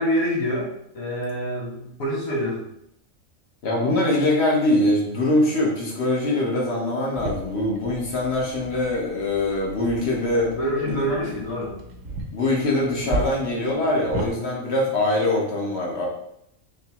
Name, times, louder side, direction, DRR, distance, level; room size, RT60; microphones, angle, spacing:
voice 1, 0.0-2.7 10.3-11.7, equal, 85° left, -3 dB, 1.6 m, -26 dB
voice 2, 3.6-10.5 10.8-11.0 11.2-11.3 12.3-16.1, left 1 dB, 55° left, -2 dB, 1.2 m, -23 dB
sound 1, 7.2-14.3, right 2 dB, 75° right, 1.1 m, -35 dB
3.9 x 3.4 x 2.9 m, 0.77 s
omnidirectional pair, 1.4 m